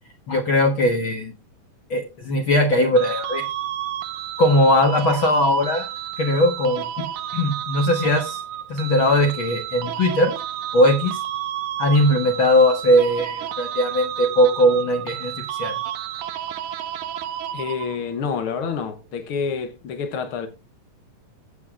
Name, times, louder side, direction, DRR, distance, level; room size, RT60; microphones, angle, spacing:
voice 1, 0.3-1.3 1.9-3.4 4.4-5.9 6.2-6.8 7.3-8.4 8.7-10.3 10.7-11.2 11.8-15.7, left 1 dB, 50° left, 1.6 m, -19 dB
sound 1, 3.0-18.2, right 11 dB, 75° right, 2.0 m, -31 dB
voice 2, 17.5-20.5, left 6 dB, 85° left, 1.2 m, -28 dB
15.5 x 8.3 x 2.4 m
omnidirectional pair, 3.9 m